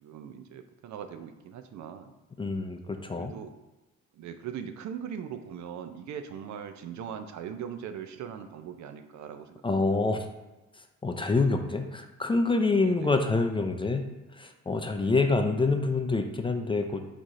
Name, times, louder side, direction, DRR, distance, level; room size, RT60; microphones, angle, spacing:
voice 1, 0.0-2.1 3.2-3.5 4.1-9.6 12.8-13.2 15.0-15.1, right 8 dB, 70° right, 8 dB, 0.5 m, -40 dB
voice 2, 2.4-3.3 9.6-10.3 11.0-14.0 14.3-17.0, left 3 dB, 15° left, 5 dB, 0.4 m, -26 dB
4.6 x 4.1 x 2.6 m, 1.1 s
cardioid pair, 90°, 30 cm